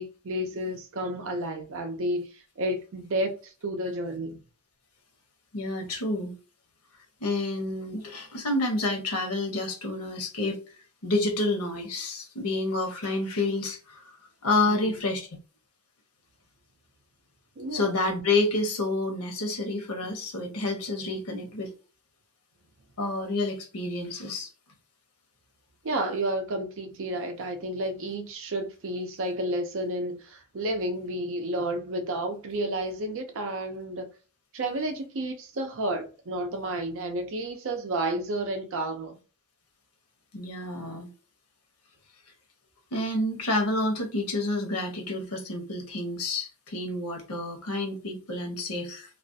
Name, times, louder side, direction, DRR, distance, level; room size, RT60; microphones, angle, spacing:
voice 1, 0.0-4.4 14.7-15.0 17.6-18.1 25.8-34.1 34.5-39.2, right 1 dB, 60° right, 0.5 m, -31 dB
voice 2, 5.5-6.3 7.2-10.6 11.0-14.1 14.4-15.3 17.7-21.7 23.0-24.5 40.3-41.1 42.9-49.2, left 2 dB, 90° left, 0.8 m, -29 dB
2.4 x 2.1 x 2.6 m
head